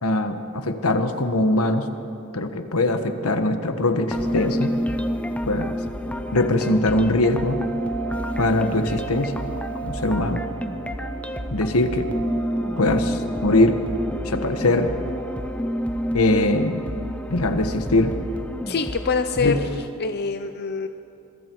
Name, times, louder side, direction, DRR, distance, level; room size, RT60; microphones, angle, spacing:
voice 1, 0.0-1.9 2.3-4.7 5.5-5.7 6.3-7.6 8.4-9.3 9.8-10.4 11.5-12.1 12.8-13.8 14.2-14.9 16.1-16.8 17.3-18.1 19.4-19.5, left 2 dB, 80° left, 7 dB, 1.5 m, -21 dB
sound 1, 4.1-19.9, equal, 5° left, 0.8 m, -29 dB
sound 2, 7.3-15.4, right 8 dB, 65° right, 4.3 m, -38 dB
voice 2, 18.7-20.9, left 5 dB, 50° left, 9 dB, 0.6 m, -25 dB
25.5 x 21.5 x 4.7 m, 2.9 s
head